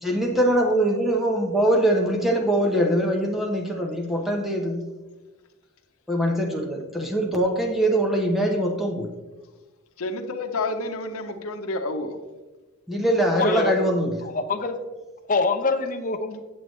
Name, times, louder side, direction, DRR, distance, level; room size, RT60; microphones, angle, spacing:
voice 1, 0.0-4.8 6.1-9.1 12.9-14.1, right 1 dB, ahead, 0 dB, 0.9 m, -23 dB
voice 2, 10.0-12.2, left 2 dB, 85° left, 6 dB, 0.8 m, -29 dB
voice 3, 13.3-13.7 14.2-14.8 15.3-16.4, left 3 dB, 40° left, 6 dB, 0.7 m, -24 dB
8.6 x 7.8 x 3.2 m, 1.2 s
head